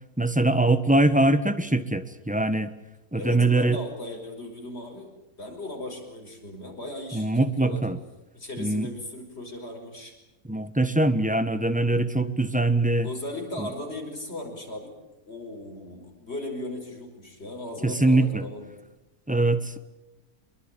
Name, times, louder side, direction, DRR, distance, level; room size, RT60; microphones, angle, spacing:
voice 1, 0.2-2.7 3.1-3.8 7.1-8.0 8.6-8.9 10.5-13.1 17.8-18.4 19.3-19.8, right 2 dB, 5° right, 11 dB, 1.2 m, -22 dB
voice 2, 3.1-5.1 5.4-7.9 8.3-10.1 13.0-15.0 15.3-18.7, left 1 dB, 45° left, 3 dB, 5.7 m, -37 dB
25.0 x 22.5 x 8.9 m, 0.99 s
omnidirectional pair, 1.6 m